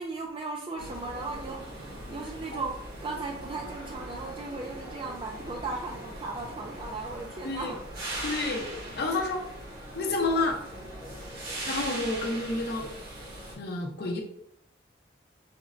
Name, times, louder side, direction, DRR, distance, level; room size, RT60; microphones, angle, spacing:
voice 1, 0.0-7.8, right 3 dB, 30° right, 1 dB, 0.3 m, -37 dB
sound 1, 0.8-13.5, right 1 dB, 60° right, 1.1 m, -40 dB
voice 2, 8.2-8.7 9.0-9.4 9.9-10.6 11.7-12.9 13.6-14.2, left 2 dB, 65° left, 2 dB, 0.6 m, -29 dB
5.0 x 2.1 x 2.4 m, 0.71 s
head